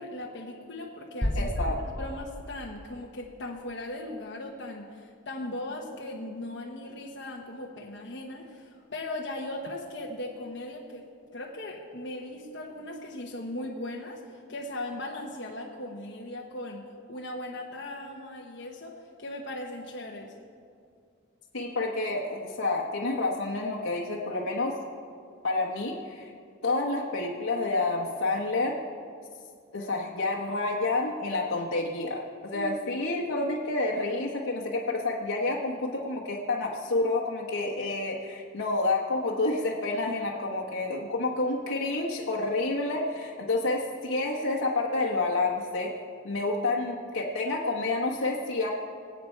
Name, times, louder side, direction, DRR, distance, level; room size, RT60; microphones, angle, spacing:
voice 1, 0.0-1.7 2.0-11.1 11.3-14.2 14.5-20.3 32.5-33.1, left 1 dB, 55° left, -1 dB, 1.2 m, -38 dB
sound 1, 1.2-3.0, equal, 5° left, 2.1 m, -32 dB
voice 2, 1.4-1.8 21.5-24.8 25.4-26.3 26.6-28.8 29.7-45.9 46.2-48.7, left 2 dB, 80° left, -2 dB, 1.2 m, -29 dB
23.5 x 8.4 x 4.6 m, 2.3 s
head